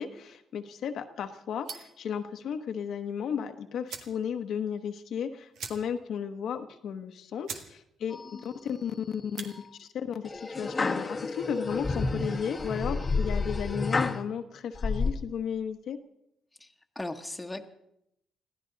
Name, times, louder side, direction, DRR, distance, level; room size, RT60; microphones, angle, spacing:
voice 1, 0.0-9.5 9.8-11.0 11.3-16.0, left 7 dB, 70° left, 6 dB, 1.0 m, -34 dB
sound 1, 1.6-2.0 3.4-3.5 3.8-4.2 4.6-4.7 4.9-5.0 5.5-6.1 6.5-6.6 7.1-7.2 7.4-7.7 8.1-8.4 9.2-9.5, right 6 dB, 75° right, 1.7 m, -42 dB
sound 2, 8.1-8.8 9.2-9.7 10.3-14.2 14.8-15.1, left 3 dB, 30° left, 1.1 m, -30 dB
voice 2, 16.6-17.6, left 2 dB, 10° left, 4 dB, 1.3 m, -38 dB
21.5 x 15.0 x 4.0 m, 0.79 s
cardioid pair, 90°, 0 cm